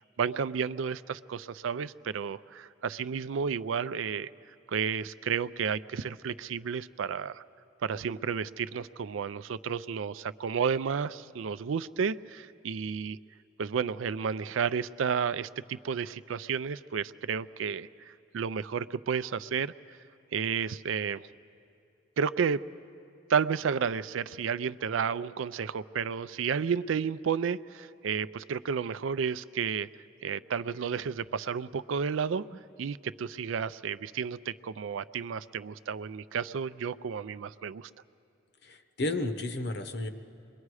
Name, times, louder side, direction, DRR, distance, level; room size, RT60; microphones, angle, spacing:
voice 1, 0.2-4.3 4.7-7.4 7.8-13.2 13.6-19.7 20.3-21.2 22.2-22.6 23.3-29.9 30.2-32.4 32.8-37.9, right 6 dB, 80° right, 16 dB, 0.4 m, -32 dB
voice 2, 38.6-40.1, left 2 dB, 60° left, 8 dB, 1.0 m, -32 dB
28.0 x 22.5 x 4.8 m, 2.7 s
head